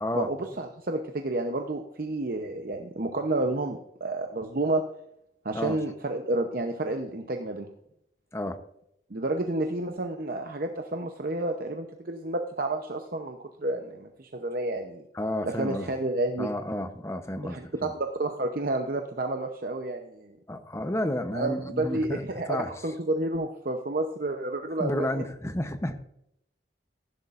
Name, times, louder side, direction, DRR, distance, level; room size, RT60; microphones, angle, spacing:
voice 1, 0.1-4.8 5.4-7.7 9.1-15.1 15.4-16.5 17.4-20.4 21.3-25.2, right 2 dB, 50° right, 4 dB, 0.8 m, -30 dB
voice 2, 8.3-8.6 15.1-15.9 16.4-17.9 20.5-22.2 22.5-22.7 24.8-26.0, left 1 dB, 15° left, 8 dB, 0.8 m, -31 dB
15.5 x 11.0 x 2.5 m, 0.77 s
head